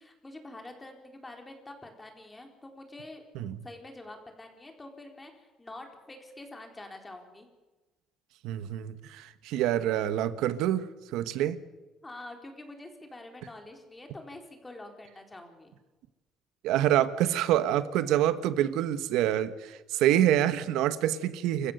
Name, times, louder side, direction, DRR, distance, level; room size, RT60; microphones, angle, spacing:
voice 1, 0.0-3.2 3.6-7.5 12.0-15.7, left 2 dB, 15° left, 4 dB, 3.9 m, -46 dB
voice 2, 8.4-11.6 16.6-21.7, right 12 dB, 80° right, 12 dB, 1.4 m, -26 dB
29.0 x 15.0 x 6.8 m, 1.2 s
cardioid pair, 115°, 0 cm